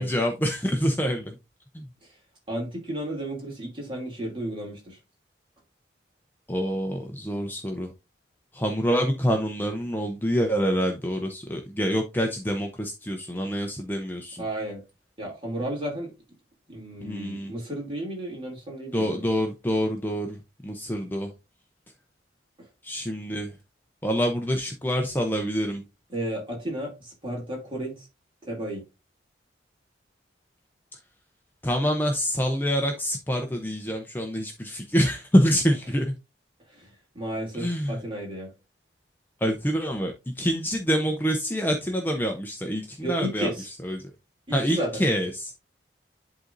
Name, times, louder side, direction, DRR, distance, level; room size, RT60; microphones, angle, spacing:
voice 1, 0.0-1.4 1.7-1.9 6.5-7.9 8.5-14.4 17.0-17.5 18.9-21.3 22.8-23.6 24.0-25.8 30.9-31.0 31.6-36.1 37.5-38.0 39.4-43.5 43.8-44.0 44.5-45.5, equal, 10° left, 0.6 m, -26 dB
voice 2, 2.5-5.0 14.4-14.8 15.2-16.1 16.7-19.3 22.6-22.7 26.1-28.1 28.4-28.8 36.7-38.5 43.0-43.7 44.5-45.0, right 1 dB, 25° right, 2.8 m, -33 dB
11.0 x 3.8 x 2.6 m
head